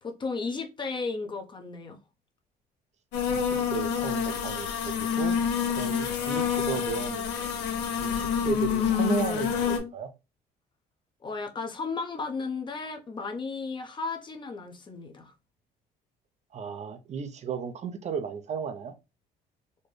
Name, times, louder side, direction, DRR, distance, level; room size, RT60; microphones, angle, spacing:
voice 1, 0.0-2.0 11.2-15.3, left 4 dB, 30° left, 0.8 m, -34 dB
sound 1, 3.1-9.8, left 7 dB, 90° left, 1.1 m, -27 dB
voice 2, 3.3-5.4 5.7-7.2 8.0-10.1 16.5-18.9, right 6 dB, 40° right, 0.6 m, -34 dB
4.3 x 2.1 x 3.2 m
cardioid pair, 110°, 17 cm